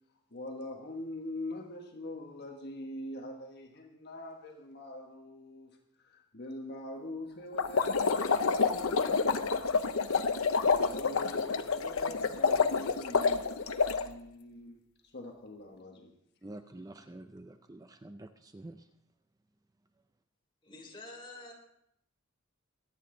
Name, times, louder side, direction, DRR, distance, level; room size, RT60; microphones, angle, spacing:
voice 1, 0.3-10.4 10.8-16.1, left 1 dB, 50° left, 1.3 m, -44 dB
sound 1, 7.6-14.1, left 4 dB, 85° left, 0.8 m, -28 dB
voice 2, 16.4-18.8, right 1 dB, 15° right, 0.4 m, -48 dB
voice 3, 20.6-21.5, left 2 dB, 25° left, 3.3 m, -47 dB
23.0 x 8.8 x 3.8 m
head